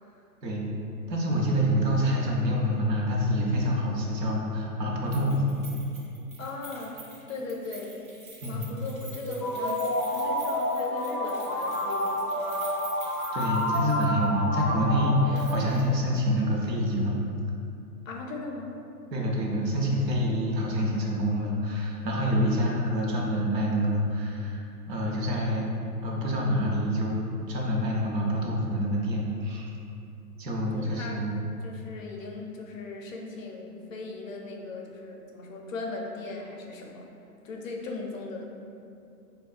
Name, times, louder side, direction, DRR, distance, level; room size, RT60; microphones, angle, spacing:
voice 1, 1.1-5.6 8.4-8.7 13.3-17.2 19.1-25.7 26.0-27.2 27.5-29.7 30.4-31.4, equal, 85° right, -2 dB, 0.8 m, -27 dB
Keys jangling, 5.1-14.3 14.6-14.7 15.3-15.9 16.2-16.3, right 4 dB, 55° right, 1.0 m, -47 dB
voice 2, 6.4-7.0 7.3-8.0 8.5-12.4 18.1-18.7 22.2-22.6 30.7-31.2 31.6-37.1 37.4-38.5, left 3 dB, 55° left, 0 dB, 0.5 m, -38 dB
sound 1, 9.2-16.0, left 1 dB, 10° right, 0.4 m, -29 dB
3.5 x 2.2 x 2.3 m, 2.6 s
hypercardioid pair, 150°, 48 cm